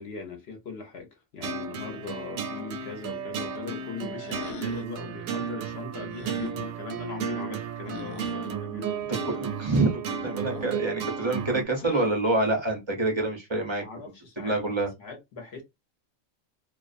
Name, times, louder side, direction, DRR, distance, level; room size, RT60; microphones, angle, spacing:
voice 1, 0.0-9.4 13.8-15.6, left 5 dB, 55° left, 0.8 m, -40 dB
sound 1, 1.4-11.6, right 6 dB, 80° right, 1.0 m, -33 dB
sound 2, 4.2-5.0 6.1-6.5 7.9-8.4 10.5-10.9 11.8-12.3, left 7 dB, 80° left, 1.0 m, -42 dB
voice 2, 9.1-13.8 14.4-14.9, right 2 dB, 35° right, 0.4 m, -27 dB
2.4 x 2.2 x 2.4 m
omnidirectional pair, 1.5 m